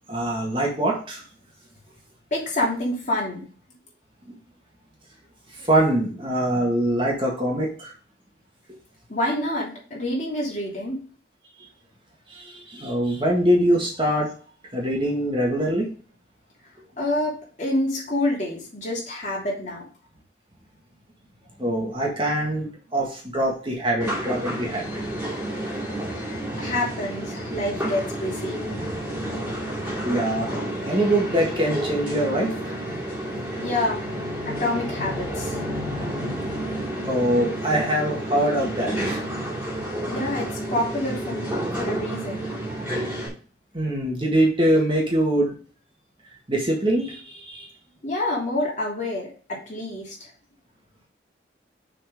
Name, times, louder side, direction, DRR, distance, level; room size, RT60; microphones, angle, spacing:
voice 1, 0.1-1.2 5.6-7.9 12.3-14.3 14.7-15.9 21.6-25.0 30.0-30.5 30.8-32.5 37.0-39.2 43.7-45.6 46.5-47.7, right 1 dB, 30° right, -1 dB, 1.7 m, -23 dB
voice 2, 2.3-3.5 9.1-11.0 17.0-19.9 25.9-26.0 26.6-28.6 33.6-34.0 34.4-35.6 40.1-41.5 41.7-42.4 48.0-50.2, left 1 dB, 40° left, -4 dB, 3.0 m, -27 dB
sound 1, 24.0-43.3, right 1 dB, 10° right, 2.6 m, -30 dB
6.6 x 4.3 x 5.0 m, 0.40 s
head